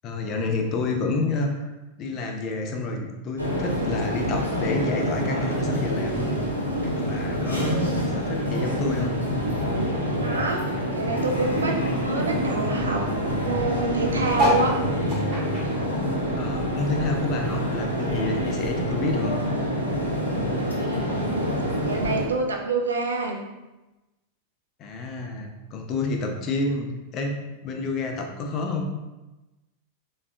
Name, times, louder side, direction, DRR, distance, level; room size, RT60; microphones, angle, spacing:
voice 1, 0.0-1.7 2.0-6.3 6.7-7.8 8.1-9.2 16.3-19.4 24.8-28.9, left 3 dB, 35° left, 3 dB, 0.4 m, -29 dB
sound 1, 3.4-22.3, equal, 90° left, 0.6 m, -26 dB
voice 2, 7.3-8.1 10.2-10.6 10.9-14.8 21.1-23.4, right 3 dB, 70° right, 1 dB, 0.4 m, -28 dB
sound 2, 14.3-17.1 17.4-18.9 19.4-19.5 19.7-19.8 20.0-20.4 21.2-21.3, equal, 30° right, 1.5 m, -29 dB
3.3 x 2.3 x 2.3 m, 1.0 s
figure-of-eight pair, 90°, 0 cm